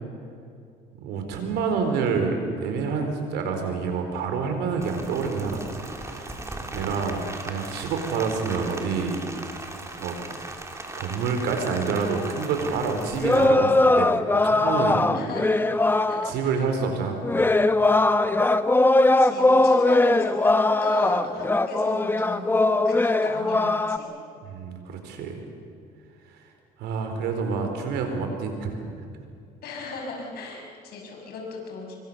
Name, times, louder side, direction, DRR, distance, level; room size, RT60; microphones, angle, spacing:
voice 1, 1.0-5.6 5.9-6.4 6.7-9.2 10.0-10.4 10.7-15.1 16.2-17.2 24.5-25.4 26.8-28.9, right 5 dB, 85° right, 5 dB, 4.5 m, -28 dB
Rain, 4.8-13.5, right 2 dB, 15° right, 3.1 m, -38 dB
sound 1, 13.2-16.3 17.2-24.0, left 2 dB, 10° left, 0.9 m, -20 dB
voice 2, 15.1-15.6 16.1-16.6 19.2-24.1 29.6-32.0, left 3 dB, 70° left, 1 dB, 6.0 m, -36 dB
25.5 x 24.0 x 7.0 m, 2.4 s
cardioid pair, 110°, 17 cm